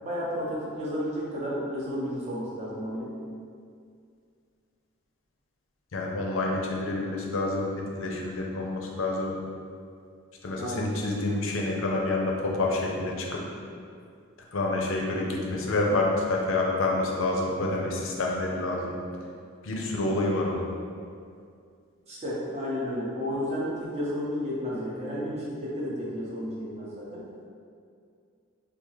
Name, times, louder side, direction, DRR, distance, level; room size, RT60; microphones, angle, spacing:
voice 1, 0.0-3.1 10.6-10.9 22.1-27.2, equal, 30° right, -7 dB, 0.7 m, -32 dB
voice 2, 5.9-9.4 10.4-13.4 14.5-19.0 19.6-20.6, left 2 dB, 70° left, -1 dB, 0.5 m, -28 dB
3.6 x 2.3 x 3.1 m, 2.3 s
head